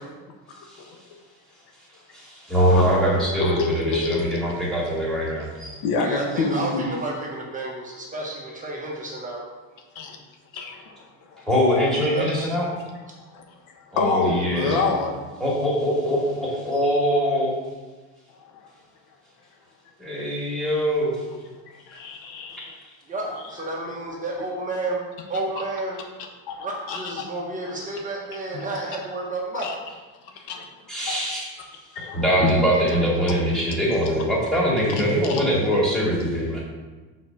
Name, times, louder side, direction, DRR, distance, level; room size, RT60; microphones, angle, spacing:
voice 1, 2.1-5.8 11.5-12.7 13.9-14.8 15.4-17.5 20.0-21.1 30.9-31.4 32.0-36.6, equal, ahead, -6 dB, 2.3 m, -22 dB
voice 2, 3.4-4.2 5.8-6.9 9.9-10.2 10.5-11.5 13.3-13.4 13.9-15.2 18.5-18.6 21.9-22.8 23.3-23.4 26.5-27.2 27.6-27.7 28.5-28.6 29.5-29.8 30.5-30.7 31.1-31.2 31.9-32.5 35.3-35.5, left 4 dB, 80° left, 3 dB, 1.2 m, -27 dB
voice 3, 6.0-9.4 12.1-12.3 23.1-26.0 26.6-29.7, right 2 dB, 20° right, -2 dB, 1.0 m, -31 dB
6.1 x 4.2 x 5.9 m, 1.3 s
cardioid pair, 145°, 36 cm